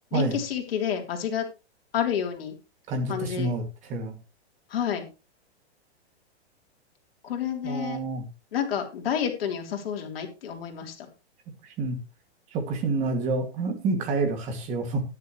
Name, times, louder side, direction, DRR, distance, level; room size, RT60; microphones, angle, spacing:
voice 1, 0.1-1.5 1.9-2.5 3.1-3.5 4.7-5.1 7.2-8.0 8.5-11.1, left 8 dB, 60° left, 3 dB, 3.5 m, -29 dB
voice 2, 2.9-4.1 7.6-8.2 11.6-12.0 12.5-15.0, right 3 dB, 20° right, 4 dB, 2.4 m, -28 dB
13.5 x 10.5 x 3.2 m, 0.28 s
hypercardioid pair, 165°, 33 cm